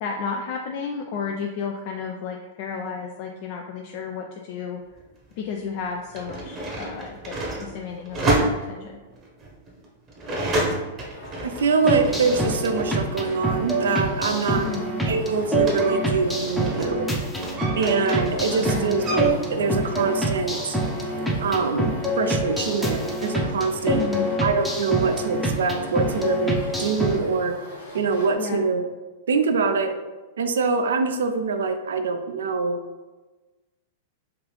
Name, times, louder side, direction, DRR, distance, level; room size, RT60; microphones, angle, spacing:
voice 1, 0.0-4.8 5.4-9.0 14.5-14.9 18.5-18.9 23.9-24.3 28.4-28.7, left 6 dB, 50° left, 2 dB, 0.3 m, -32 dB
sound 1, 5.0-5.1 5.9-12.9 13.2-17.0 17.3-19.3, right 1 dB, 30° right, 0.8 m, -29 dB
sound 2, 11.0-28.4, left 2 dB, 85° left, 1.1 m, -41 dB
voice 2, 11.4-14.7 15.1-17.0 17.8-20.8 21.4-24.0 24.4-27.6 27.9-28.9 29.3-30.0 30.4-32.8, right 4 dB, 80° right, 7 dB, 0.4 m, -24 dB
sound 3, 11.8-27.2, right 1 dB, ahead, 0.6 m, -26 dB
3.2 x 2.4 x 3.0 m, 1.2 s
hypercardioid pair, 115°, 0 cm